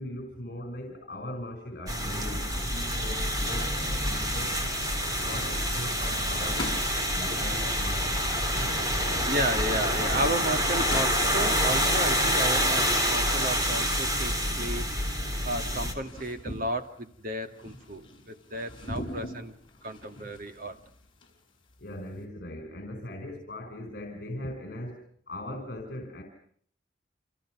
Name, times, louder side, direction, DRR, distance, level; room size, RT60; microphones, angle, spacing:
voice 1, 0.0-4.6 5.0-6.7 7.1-9.3 21.8-26.2, left 1 dB, 50° left, 4 dB, 5.1 m, -40 dB
sound 1, 1.9-15.9, equal, 20° right, 3.7 m, -27 dB
sound 2, 3.0-22.2, left 1 dB, 25° left, 7.1 m, -44 dB
voice 2, 4.3-5.3 6.0-6.4 7.0-7.4 9.3-19.6 19.8-20.8, right 1 dB, 50° right, 6 dB, 2.3 m, -34 dB
29.0 x 27.0 x 6.2 m, 0.62 s
head